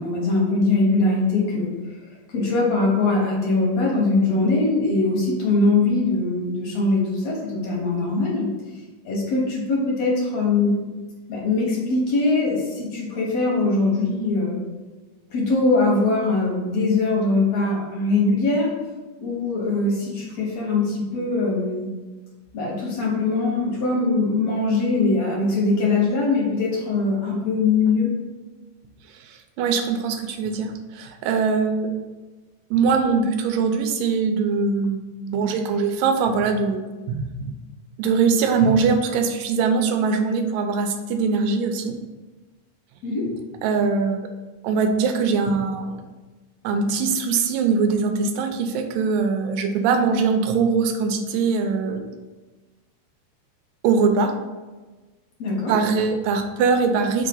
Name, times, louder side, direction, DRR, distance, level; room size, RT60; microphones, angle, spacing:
voice 1, 0.0-1.7 2.3-8.5 9.1-10.8 11.3-14.6 15.3-18.7 19.2-21.9 22.5-28.1 43.0-43.3 55.4-55.7, left 3 dB, 60° left, -3 dB, 2.2 m, -21 dB
voice 2, 29.1-31.9 32.7-37.6 38.0-42.0 43.6-44.3 44.6-46.0 46.6-52.1 53.8-54.4 55.7-57.3, right 5 dB, 85° right, 5 dB, 2.3 m, -22 dB
5.2 x 3.7 x 5.4 m, 1.2 s
omnidirectional pair, 3.9 m